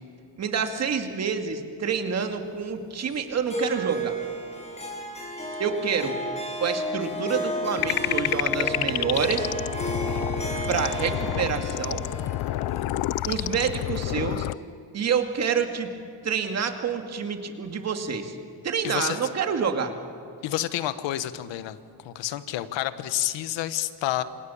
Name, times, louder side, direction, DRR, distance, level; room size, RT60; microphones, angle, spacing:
voice 1, 0.4-4.2 5.6-6.2 6.6-9.5 10.7-12.0 13.3-14.5 14.9-15.9 16.2-18.3 18.6-19.9, right 6 dB, 35° right, 6 dB, 2.2 m, -27 dB
Harp, 3.5-14.1, right 1 dB, 15° left, 5.9 m, -32 dB
sound 1, 7.8-14.5, left 16 dB, 60° left, 0.6 m, -29 dB
voice 2, 18.8-19.2 20.4-21.8 22.0-24.2, left 13 dB, 85° left, 12 dB, 1.4 m, -29 dB
28.5 x 26.5 x 7.2 m, 2.5 s
cardioid pair, 165°, 43 cm